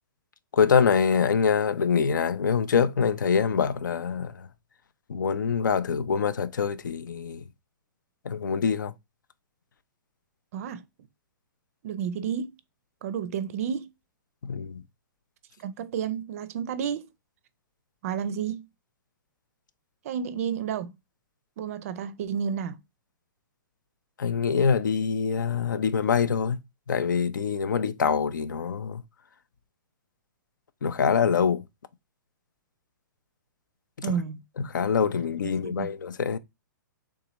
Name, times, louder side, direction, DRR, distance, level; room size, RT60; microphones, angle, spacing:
voice 1, 0.5-4.5 5.1-7.4 8.2-8.9 14.4-14.8 24.2-26.6 26.9-29.0 30.8-31.6 34.0-34.1 34.7-36.4, left 6 dB, 70° left, 0.4 m, -25 dB
voice 2, 10.5-10.8 11.8-12.6 13.0-13.9 15.6-17.1 18.0-18.7 20.0-20.9 21.6-22.8 34.0-34.4 35.6-35.9, right 8 dB, 45° right, 0.4 m, -31 dB
3.6 x 2.8 x 2.9 m
figure-of-eight pair, 115°, 11 cm